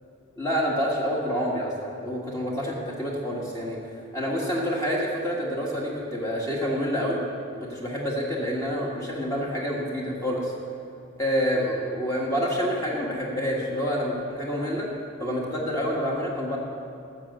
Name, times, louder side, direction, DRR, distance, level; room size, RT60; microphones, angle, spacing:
voice 1, 0.4-3.8 4.1-7.2 7.5-10.5 11.2-14.9 15.2-16.6, equal, 15° left, -4 dB, 1.4 m, -27 dB
13.5 x 6.2 x 7.7 m, 2.7 s
head